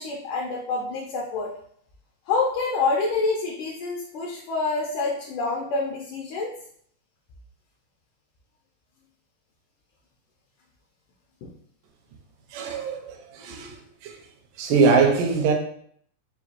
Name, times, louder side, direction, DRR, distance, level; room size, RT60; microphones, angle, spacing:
voice 1, 0.0-1.5 2.3-6.5 11.4-11.5 12.7-12.8, left 3 dB, 75° left, 1.9 m, -27 dB
voice 2, 12.5-13.7 14.0-14.1 14.6-15.5, right 4 dB, 80° right, 2.0 m, -22 dB
5.8 x 2.3 x 2.9 m
omnidirectional pair, 4.1 m